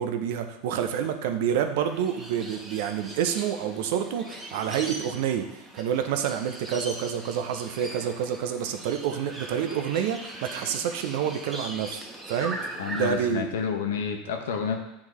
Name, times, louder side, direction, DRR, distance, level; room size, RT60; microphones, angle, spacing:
voice 1, 0.0-13.5, right 8 dB, 65° right, 7 dB, 0.6 m, -28 dB
sound 1, 1.8-13.3, right 1 dB, 20° right, 1.0 m, -40 dB
voice 2, 12.8-14.8, left 6 dB, 70° left, 4 dB, 0.8 m, -29 dB
9.5 x 3.7 x 3.1 m, 0.89 s
hypercardioid pair, 80°, 0 cm